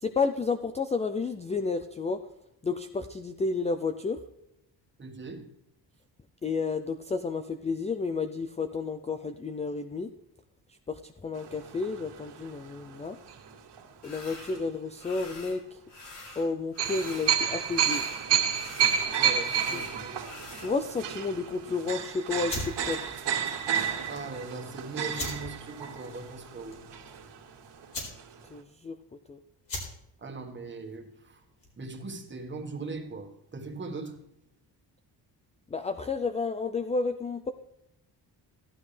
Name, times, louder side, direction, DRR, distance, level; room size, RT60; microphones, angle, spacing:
voice 1, 0.0-2.2 2.6-4.2 6.4-10.1 10.9-13.2 14.0-15.6 16.4-18.0 19.7-19.8 20.6-23.0 28.5-29.0 29.3-29.4 35.7-37.5, left 4 dB, 15° left, 0.4 m, -31 dB
voice 2, 5.0-5.5 19.2-20.2 24.1-26.8 30.2-31.4 31.8-34.2, right 3 dB, 25° right, 1.5 m, -40 dB
sound 1, 11.4-13.8 14.4-14.6 16.8-27.5 27.8-27.9 28.2-28.4, right 8 dB, 75° right, 2.2 m, -31 dB
sound 2, 14.0-14.6 15.0-15.6 15.9-17.4 17.6-20.7, left 2 dB, 80° left, 3.9 m, -46 dB
sound 3, 22.4-31.9, left 2 dB, 50° left, 4.3 m, -42 dB
15.5 x 12.0 x 3.3 m
cardioid pair, 155°, 42 cm